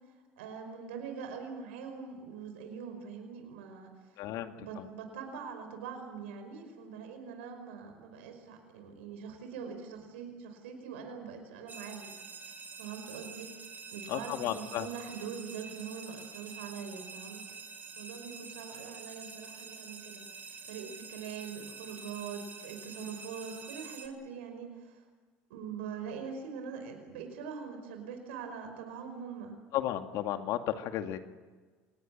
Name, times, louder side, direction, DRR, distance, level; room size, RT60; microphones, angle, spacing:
voice 1, 0.4-3.9 4.6-12.1 12.4-13.5 13.9-17.6 18.0-20.2 20.7-25.0 25.5-29.5, right 6 dB, 90° right, 5 dB, 5.2 m, -43 dB
voice 2, 4.2-4.9 14.1-14.9 29.7-31.2, left 12 dB, 70° left, 6 dB, 2.3 m, -34 dB
sound 1, 11.7-24.1, right 5 dB, 30° right, 4.4 m, -47 dB
26.5 x 20.0 x 8.8 m, 1.4 s
supercardioid pair, 90°, 6 cm